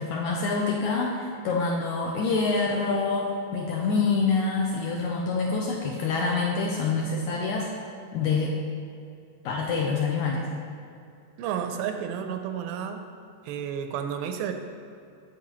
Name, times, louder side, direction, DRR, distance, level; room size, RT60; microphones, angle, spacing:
voice 1, 0.0-7.7 8.1-8.6 9.4-10.5, left 4 dB, 80° left, -1 dB, 1.7 m, -26 dB
voice 2, 11.4-13.0 13.4-14.5, right 8 dB, 85° right, 6 dB, 2.3 m, -31 dB
8.7 x 8.2 x 3.0 m, 2.5 s
omnidirectional pair, 4.2 m